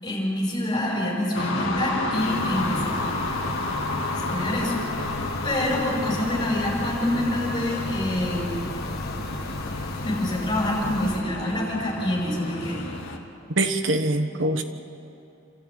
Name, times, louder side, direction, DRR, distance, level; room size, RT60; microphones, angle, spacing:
voice 1, 0.0-3.0 4.1-5.1 5.4-8.6 10.0-12.9, left 1 dB, 20° left, -3 dB, 6.1 m, -26 dB
sound 1, 1.3-13.2, left 2 dB, 90° left, 2.3 m, -31 dB
sound 2, 2.1-11.2, left 2 dB, 50° left, 1.6 m, -35 dB
voice 2, 13.6-14.6, right 2 dB, 65° right, 7 dB, 1.3 m, -23 dB
27.5 x 13.5 x 8.9 m, 2.7 s
head